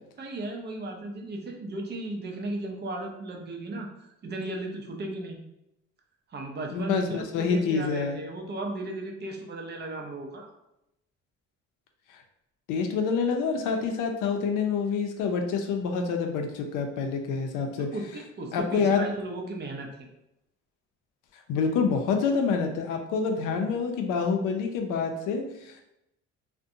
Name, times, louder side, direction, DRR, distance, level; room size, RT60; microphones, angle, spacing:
voice 1, 0.2-5.4 6.3-10.5 17.8-20.1, right 2 dB, 35° right, 2 dB, 0.5 m, -35 dB
voice 2, 6.7-8.2 12.7-17.9 18.5-19.0 21.5-25.8, left 5 dB, 85° left, 4 dB, 0.5 m, -27 dB
2.5 x 2.1 x 2.6 m, 0.83 s
cardioid pair, 105°, 30 cm